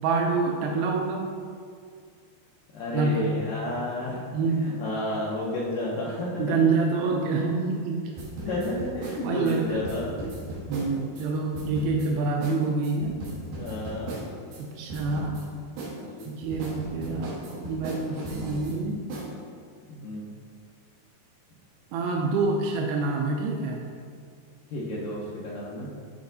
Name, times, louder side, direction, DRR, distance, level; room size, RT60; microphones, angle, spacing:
voice 1, 0.0-1.3 2.9-3.4 4.3-4.7 6.4-8.0 9.2-9.8 10.7-13.2 14.6-15.5 16.3-19.0 21.9-23.9, right 4 dB, 85° right, 1 dB, 2.1 m, -27 dB
voice 2, 2.7-6.6 8.4-10.1 12.5-12.6 13.5-14.2 15.9-16.3 18.2-18.6 19.9-20.3 24.7-25.9, left 1 dB, 85° left, -6 dB, 1.8 m, -32 dB
sound 1, 8.2-11.3 11.5-12.1 12.4-12.6 12.8-14.6 14.9-15.4 15.8-18.7 19.1-19.3, right 2 dB, 70° right, 3.1 m, -37 dB
9.3 x 4.3 x 2.7 m, 2.1 s
omnidirectional pair, 4.8 m